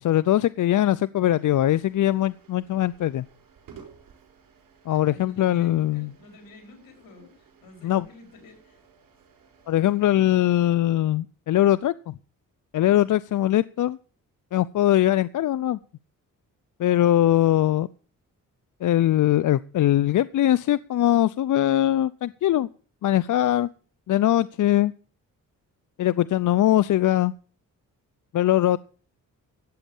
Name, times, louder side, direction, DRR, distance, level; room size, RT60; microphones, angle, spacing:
voice 1, 0.0-3.2 4.9-6.1 7.8-8.0 9.7-12.2 12.7-14.0 14.5-15.8 16.8-17.9 18.8-22.7 23.0-23.7 24.1-24.9 26.0-27.3 28.3-28.8, left 13 dB, 65° left, 18 dB, 0.5 m, -21 dB
sound 1, 1.3-10.5, right 6 dB, 90° right, 4.8 m, -55 dB
voice 2, 4.9-8.8, left 2 dB, 85° left, 4 dB, 4.7 m, -49 dB
13.5 x 8.4 x 7.1 m, 0.40 s
cardioid pair, 85°, 33 cm